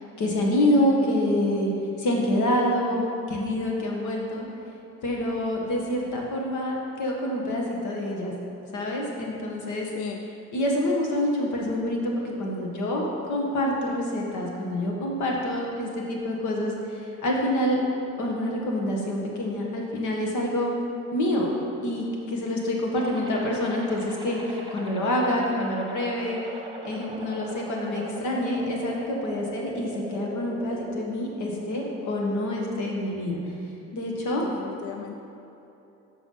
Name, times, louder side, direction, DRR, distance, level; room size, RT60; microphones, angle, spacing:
voice 1, 0.2-1.7 2.0-4.4 5.0-8.3 8.7-9.9 10.5-17.8 18.2-20.7 21.1-21.5 21.8-26.4 26.8-33.4 33.9-34.4, left 1 dB, 75° left, -1 dB, 1.5 m, -27 dB
voice 2, 9.8-10.2 34.4-35.2, left 8 dB, 50° left, 6 dB, 0.4 m, -36 dB
sound 1, 23.0-31.0, right 1 dB, 15° right, 1.1 m, -40 dB
7.1 x 4.7 x 5.6 m, 3.0 s
cardioid pair, 90°, 30 cm